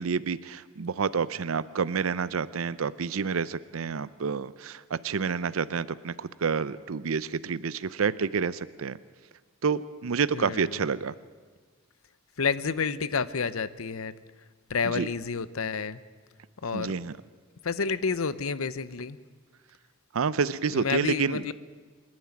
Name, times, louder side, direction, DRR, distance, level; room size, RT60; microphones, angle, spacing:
voice 1, 0.0-9.0 9.6-11.1 14.8-15.1 16.7-17.2 20.1-21.4, right 5 dB, 75° right, 17 dB, 0.5 m, -29 dB
voice 2, 10.3-10.7 12.4-14.1 14.7-16.0 16.6-17.0 17.6-19.2 20.7-21.5, left 5 dB, 80° left, 16 dB, 0.8 m, -29 dB
25.5 x 10.5 x 9.8 m, 1.5 s
head